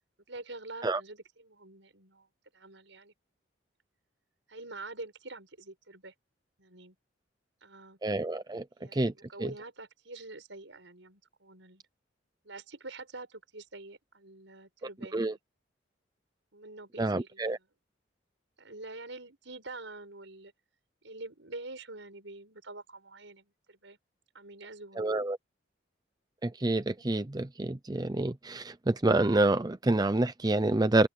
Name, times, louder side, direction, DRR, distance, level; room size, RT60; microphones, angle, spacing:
voice 1, 0.3-2.3 2.5-3.1 4.5-6.1 6.6-7.0 7.6-8.0 8.8-11.8 12.4-15.4 16.5-17.7 18.6-20.5 21.0-24.0 24.3-25.1, right 2 dB, 75° right, 5.8 m, -46 dB
voice 2, 8.0-8.6 8.9-9.1 9.4-9.5 15.1-15.3 17.0-17.6 25.0-25.4 26.4-31.1, right 2 dB, 20° right, 0.6 m, -27 dB
open air
head